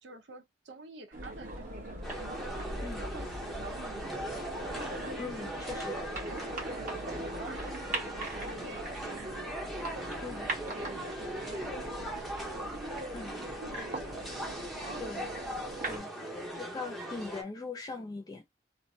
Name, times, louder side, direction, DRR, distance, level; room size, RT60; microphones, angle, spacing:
voice 1, 0.0-2.0 2.4-9.5 9.8-12.1 12.4-15.4, right 3 dB, 75° right, 0.7 m, -50 dB
sound 1, 1.1-16.0, right 2 dB, 45° right, 1.2 m, -40 dB
sound 2, 2.0-17.4, equal, ahead, 0.7 m, -40 dB
voice 2, 5.2-6.0 10.2-10.4 13.1-13.3 15.0-15.3 15.9-16.1 16.5-18.5, left 3 dB, 20° left, 0.3 m, -40 dB
3.1 x 2.0 x 2.6 m
head